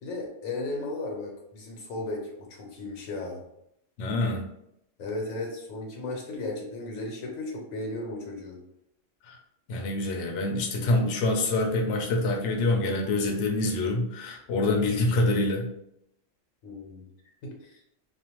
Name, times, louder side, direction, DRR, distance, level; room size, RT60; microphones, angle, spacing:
voice 1, 0.0-3.4 5.0-8.6 16.6-17.1 17.4-17.8, left 2 dB, 90° left, 0 dB, 1.1 m, -35 dB
voice 2, 4.0-4.4 9.2-9.4 9.7-15.7, left 2 dB, 70° left, 1 dB, 0.8 m, -26 dB
2.5 x 2.2 x 2.9 m, 0.76 s
omnidirectional pair, 1.4 m